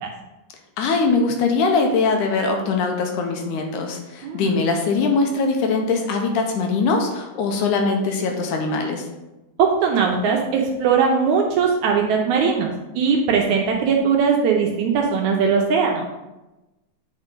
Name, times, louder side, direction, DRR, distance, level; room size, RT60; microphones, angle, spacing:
voice 1, 0.8-9.1, left 4 dB, 75° left, 3 dB, 2.1 m, -21 dB
voice 2, 9.6-16.1, right 6 dB, 75° right, 1 dB, 1.9 m, -20 dB
8.5 x 4.4 x 3.7 m, 1.0 s
omnidirectional pair, 3.8 m